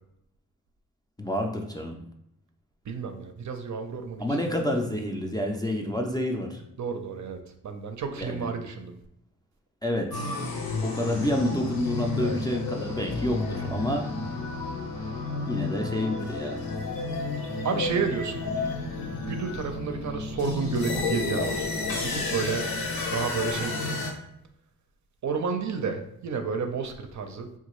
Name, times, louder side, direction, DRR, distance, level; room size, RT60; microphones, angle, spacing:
voice 1, 1.2-2.0 4.2-6.6 8.2-8.4 9.8-10.3 10.8-14.1 15.4-16.6, left 1 dB, 10° left, 0 dB, 0.3 m, -28 dB
voice 2, 2.9-4.4 4.7-4.9 6.8-9.0 12.2-12.4 17.6-18.5 19.1-21.7 22.0-22.7 23.1-24.0 25.2-27.5, right 5 dB, 55° right, 5 dB, 0.5 m, -31 dB
sound 1, 10.1-24.1, left 3 dB, 80° left, 0.8 m, -31 dB
3.6 x 2.4 x 3.0 m, 0.78 s
cardioid pair, 85°, 35 cm